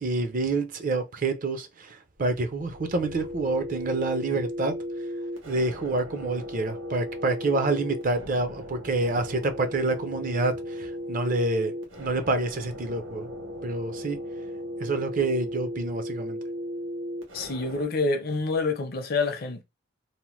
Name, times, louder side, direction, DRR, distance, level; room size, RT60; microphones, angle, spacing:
voice 1, 0.0-4.7 5.4-11.7 12.0-13.3 13.6-14.2 14.8-16.4, right 2 dB, 40° right, 0.4 m, -27 dB
sound 1, 2.2-17.8, equal, 75° right, 1.0 m, -36 dB
voice 2, 17.3-19.6, left 3 dB, 45° left, 0.5 m, -27 dB
2.8 x 2.0 x 3.0 m
head